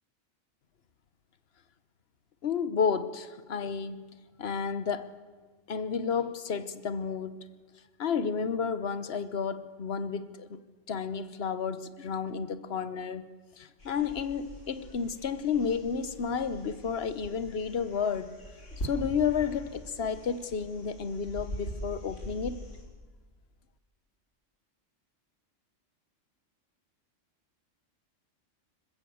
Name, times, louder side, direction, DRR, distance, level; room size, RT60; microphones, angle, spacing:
voice 1, 2.4-4.1 4.4-5.1 5.7-7.4 8.0-10.6 10.9-13.3 13.6-18.3 18.8-22.6, left 6 dB, 55° left, 1.2 m, -31 dB
sound 1, 13.8-22.8, equal, 70° left, 5.8 m, -43 dB
26.0 x 15.0 x 7.9 m
omnidirectional pair, 1.3 m